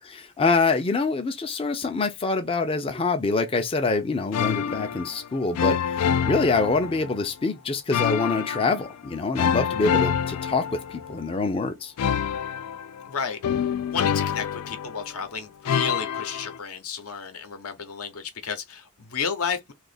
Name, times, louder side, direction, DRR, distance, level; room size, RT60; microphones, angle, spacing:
voice 1, 0.1-11.9, left 3 dB, 25° left, 0.4 m, -25 dB
sound 1, 4.3-5.2 5.5-7.2 7.9-8.9 9.4-11.3 12.0-15.2 15.6-16.6, left 8 dB, 90° left, 0.4 m, -26 dB
voice 2, 13.0-13.4 13.9-19.7, left 6 dB, 70° left, 0.8 m, -32 dB
2.8 x 2.4 x 3.9 m
head